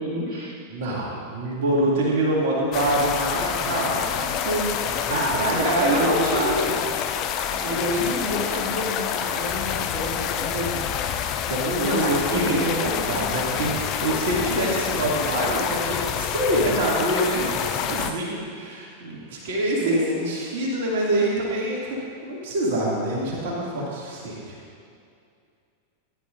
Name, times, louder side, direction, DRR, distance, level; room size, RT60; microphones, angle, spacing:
voice 1, 0.0-0.5 1.4-1.5 5.1-6.8 7.6-10.8 11.8-12.7 19.8-20.3, right 1 dB, 35° right, -7 dB, 2.4 m, -27 dB
voice 2, 0.7-6.7 7.5-8.1 11.5-20.0 20.2-22.0 22.2-24.6, right 1 dB, 55° right, -4 dB, 2.6 m, -26 dB
sound 1, 2.7-18.1, left 9 dB, 40° left, 0.6 m, -27 dB
15.5 x 11.0 x 2.7 m, 2.3 s
figure-of-eight pair, 90°, 0 cm